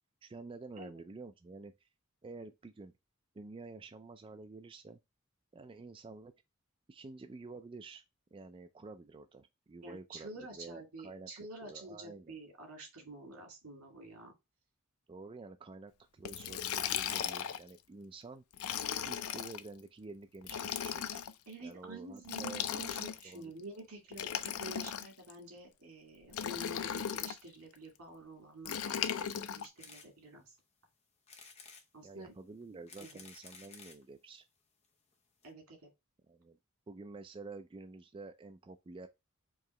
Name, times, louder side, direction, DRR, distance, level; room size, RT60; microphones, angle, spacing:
voice 1, 0.2-1.9 2.2-2.9 3.3-5.0 5.5-6.3 6.9-8.0 8.3-12.3 15.1-18.4 19.1-21.2 21.6-22.6 23.2-23.5 32.0-34.4 36.3-36.6 36.9-39.1, right 3 dB, 25° right, 0.3 m, -49 dB
voice 2, 9.8-14.3 21.5-30.6 31.9-32.3 33.0-33.2 35.4-35.9, right 2 dB, 85° right, 2.2 m, -49 dB
Liquid, 16.3-17.7 18.5-19.6 20.4-21.3 22.2-23.4 24.1-25.3 26.3-27.4 28.7-29.7, left 9 dB, 85° left, 0.4 m, -37 dB
sound 1, 29.8-30.1 30.6-30.7 31.3-31.9 32.6-34.0 34.8-34.9 35.1-35.2 35.4-35.5, left 5 dB, 30° left, 0.8 m, -54 dB
4.7 x 2.8 x 3.1 m
head